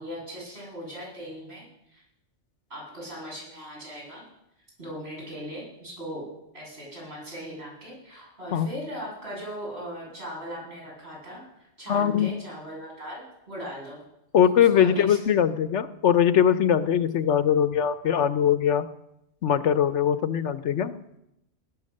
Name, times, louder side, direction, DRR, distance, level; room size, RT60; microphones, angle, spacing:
voice 1, 0.0-1.6 1.9-2.0 2.7-4.2 4.8-6.2 6.5-14.0 14.7-15.2, equal, 60° right, -4 dB, 8.4 m, -39 dB
voice 2, 11.9-12.3 14.3-18.9 19.4-21.0, left 8 dB, 70° left, 13 dB, 1.1 m, -21 dB
19.0 x 11.5 x 6.5 m, 0.85 s
omnidirectional pair, 1.2 m